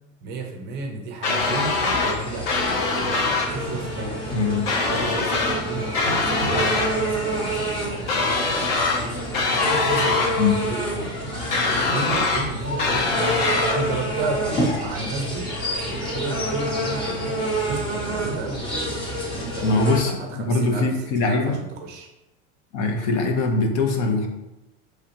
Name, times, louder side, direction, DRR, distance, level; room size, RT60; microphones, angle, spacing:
voice 1, 0.2-4.4 4.9-9.2 9.7-11.2 11.8-13.1 13.7-15.5 15.8-17.2 17.6-18.6 19.2-22.1, right 3 dB, 30° right, 3 dB, 0.5 m, -33 dB
sound 1, 1.2-2.2 2.5-3.5 4.7-5.6 5.9-6.9 8.1-9.0 9.3-10.3 11.5-12.4 12.8-13.8, left 3 dB, 50° left, 0.7 m, -23 dB
sound 2, 1.4-20.0, right 1 dB, 15° left, 0.6 m, -28 dB
voice 2, 4.3-4.7 10.4-10.6 19.6-21.6 22.7-24.3, left 3 dB, 80° left, 3 dB, 0.9 m, -22 dB
4.9 x 3.3 x 2.9 m, 0.98 s
supercardioid pair, 170°, 35 cm